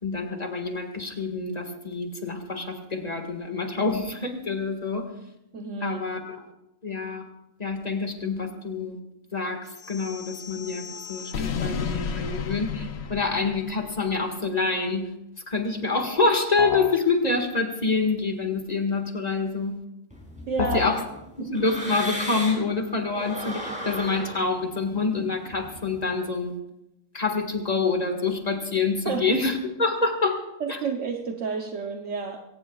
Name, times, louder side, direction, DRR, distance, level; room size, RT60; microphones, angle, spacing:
voice 1, 0.0-5.1 5.8-6.4 6.8-7.3 7.6-9.0 9.3-15.1 15.3-19.8 20.6-21.0 21.4-26.6 27.1-30.4 30.7-30.8, left 4 dB, 30° left, 4 dB, 1.9 m, -27 dB
voice 2, 5.5-6.2 20.5-20.9 29.0-29.3 30.6-32.4, right 5 dB, 65° right, 3 dB, 1.2 m, -30 dB
sound 1, 9.8-14.1, left 6 dB, 55° left, 1.0 m, -33 dB
sound 2, 16.6-17.1 20.6-21.1, left 6 dB, 85° left, 1.3 m, -29 dB
sound 3, 20.1-22.7 23.1-26.1, equal, 5° right, 5.7 m, -36 dB
22.5 x 18.0 x 2.4 m, 0.89 s
omnidirectional pair, 1.4 m